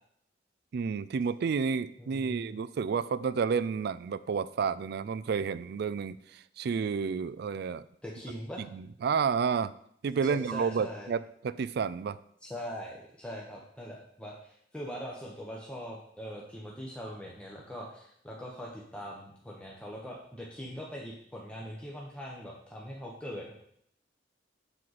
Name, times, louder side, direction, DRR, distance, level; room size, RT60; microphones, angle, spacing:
voice 1, 0.7-7.8 8.6-9.7 10.0-12.2, right 6 dB, 60° right, 16 dB, 0.3 m, -30 dB
voice 2, 2.0-2.6 8.0-8.6 10.2-11.1 12.4-23.5, equal, 5° left, -3 dB, 0.9 m, -42 dB
7.5 x 6.3 x 4.1 m, 0.68 s
head